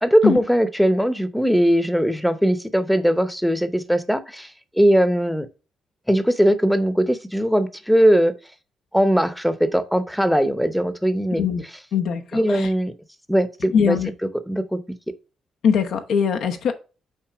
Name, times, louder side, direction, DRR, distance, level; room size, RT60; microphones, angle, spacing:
voice 1, 0.0-5.5 6.1-8.3 8.9-11.4 12.3-12.9 13.3-14.0 14.5-14.8, equal, ahead, 0.8 m, -20 dB
voice 2, 11.9-12.7 13.7-14.1 15.6-16.7, left 7 dB, 70° left, 0.9 m, -21 dB
5.8 x 4.2 x 4.9 m
cardioid pair, 90°, 0 cm